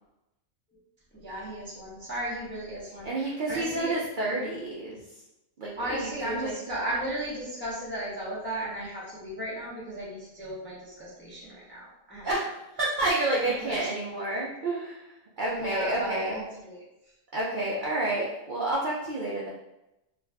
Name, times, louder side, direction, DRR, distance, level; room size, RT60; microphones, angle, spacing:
voice 1, 1.1-4.0 5.8-12.2 13.4-13.8 15.5-16.8, right 1 dB, 15° left, -7 dB, 0.4 m, -35 dB
voice 2, 3.0-5.2 5.6-6.5 12.2-12.5 12.8-16.4 17.3-19.5, right 2 dB, 60° right, -5 dB, 0.5 m, -29 dB
2.5 x 2.3 x 3.2 m, 0.93 s
omnidirectional pair, 1.4 m